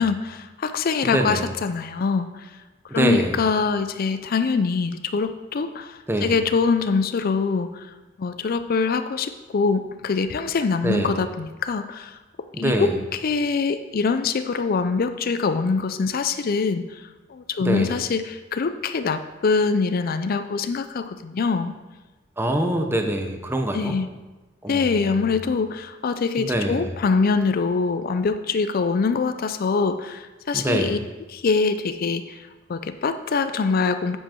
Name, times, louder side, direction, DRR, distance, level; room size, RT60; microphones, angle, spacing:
voice 1, 0.0-2.5 2.9-7.9 8.2-12.2 12.6-17.0 17.3-21.8 23.7-24.1 24.7-31.0 31.3-34.2, left 4 dB, 50° left, 10 dB, 0.4 m, -24 dB
voice 2, 1.0-1.5 2.9-3.4 6.1-6.4 10.8-11.1 12.5-13.0 17.6-17.9 22.4-24.0 24.6-25.3 26.4-26.9 30.5-31.0, right 1 dB, 10° right, 4 dB, 0.8 m, -24 dB
8.1 x 7.6 x 4.4 m, 1.2 s
head